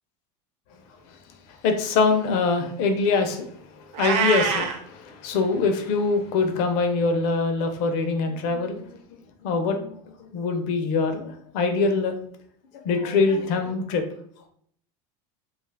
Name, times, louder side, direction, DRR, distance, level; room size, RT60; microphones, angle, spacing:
voice 1, 1.6-3.5 3.7-8.8 9.4-10.0 10.3-12.1 12.7-14.0, left 4 dB, 55° left, 0.6 m, -24 dB
Meow, 3.9-4.8, right 6 dB, 45° right, 0.5 m, -24 dB
2.9 x 2.3 x 3.3 m
supercardioid pair, 155°, 16 cm